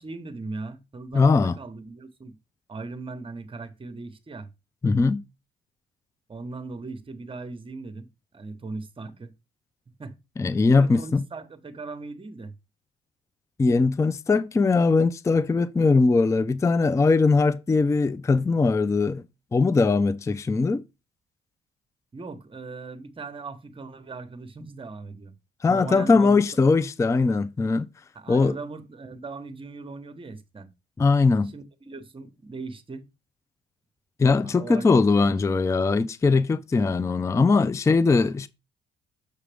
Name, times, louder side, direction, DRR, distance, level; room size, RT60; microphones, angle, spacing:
voice 1, 0.0-2.4 2.7-4.5 6.3-8.1 8.3-9.3 9.9-10.1 10.6-12.5 22.1-25.3 25.7-26.4 28.1-30.7 31.4-33.1 34.4-34.9 35.2-35.4, right 3 dB, 25° right, 1.0 m, -38 dB
voice 2, 1.1-1.6 4.8-5.2 10.4-11.2 13.6-19.2 19.5-20.8 25.6-27.9 28.3-28.6 31.0-31.5 34.2-38.5, left 4 dB, 15° left, 0.4 m, -21 dB
6.7 x 4.9 x 3.4 m
cardioid pair, 90°, 20 cm